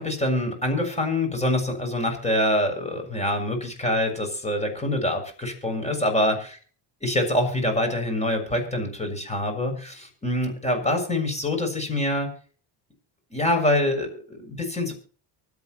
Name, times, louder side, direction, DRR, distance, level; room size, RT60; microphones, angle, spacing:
voice 1, 0.0-6.6 7.0-12.3 13.3-14.9, left 1 dB, 15° left, 5 dB, 6.8 m, -25 dB
24.5 x 9.0 x 3.0 m, 0.41 s
cardioid pair, 115°, 46 cm